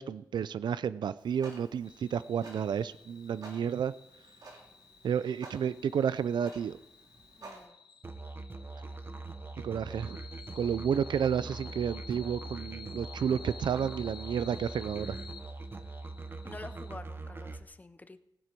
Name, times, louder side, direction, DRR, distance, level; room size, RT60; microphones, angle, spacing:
voice 1, 0.0-3.9 5.0-6.8 9.6-10.2 10.6-15.2, right 8 dB, 80° right, 16 dB, 0.4 m, -31 dB
Clock, 1.2-7.7, right 2 dB, 60° right, 2.3 m, -53 dB
sound 1, 1.8-16.9, left 6 dB, 80° left, 0.7 m, -52 dB
voice 2, 7.4-7.8 9.7-10.0 16.4-18.2, left 2 dB, 20° left, 12 dB, 0.6 m, -48 dB
Musical instrument, 8.0-17.6, right 3 dB, 30° right, 0.7 m, -42 dB
19.0 x 7.7 x 4.5 m, 0.84 s
wide cardioid pair, 145°, 8 cm